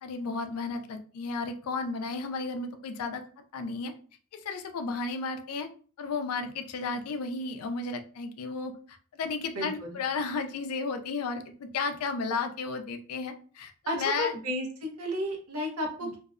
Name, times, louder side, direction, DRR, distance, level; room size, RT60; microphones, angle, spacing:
voice 1, 0.0-3.2 3.5-3.9 4.3-5.7 6.0-14.3 16.0-16.1, left 4 dB, 80° left, 7 dB, 0.4 m, -33 dB
voice 2, 9.6-10.0 13.9-16.2, equal, 90° right, 2 dB, 0.8 m, -32 dB
2.6 x 2.0 x 2.4 m, 0.41 s
head